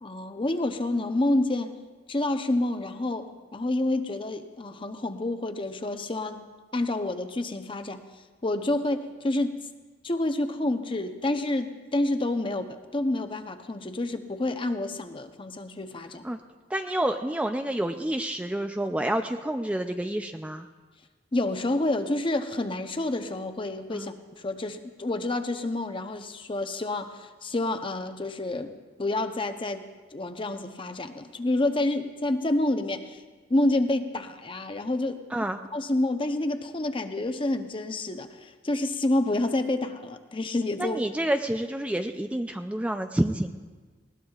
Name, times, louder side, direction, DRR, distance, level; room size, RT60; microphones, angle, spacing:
voice 1, 0.0-1.8 2.1-6.4 6.7-8.0 8.4-9.6 10.0-16.3 21.3-28.7 29.0-33.2 33.5-35.2 35.7-41.0, left 2 dB, 30° left, 8 dB, 0.7 m, -28 dB
voice 2, 16.7-20.7 23.9-24.1 35.3-35.6 40.8-43.5, right 1 dB, 10° right, 6 dB, 0.4 m, -28 dB
20.0 x 18.5 x 2.4 m, 1.4 s
head